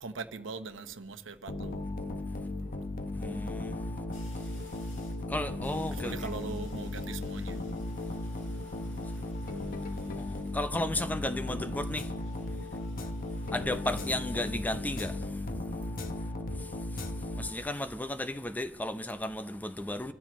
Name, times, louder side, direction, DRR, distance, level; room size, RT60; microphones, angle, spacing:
voice 1, 0.0-1.8 5.9-7.6, right 4 dB, 85° right, 1.0 m, -41 dB
sound 1, 1.5-17.9, left 2 dB, 50° left, 1.0 m, -36 dB
voice 2, 3.1-3.8 5.3-6.1 8.0-8.1 8.8-9.1 10.0-12.1 13.5-15.4 16.6-20.1, left 1 dB, 10° left, 0.6 m, -35 dB
sound 2, 4.1-5.3 5.6-10.6 11.6-14.2, left 3 dB, 75° left, 5.4 m, -60 dB
26.5 x 13.5 x 3.1 m
head